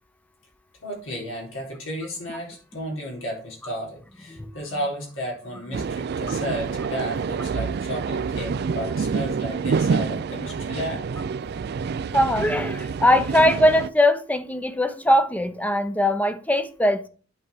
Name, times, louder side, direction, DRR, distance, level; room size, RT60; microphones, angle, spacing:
voice 1, 0.8-11.0, equal, 90° left, 3.9 m, -33 dB
sound 1, 5.7-13.9, right 5 dB, 55° right, 0.4 m, -27 dB
voice 2, 12.1-17.1, left 1 dB, 10° left, 0.6 m, -20 dB
8.7 x 4.8 x 4.8 m
head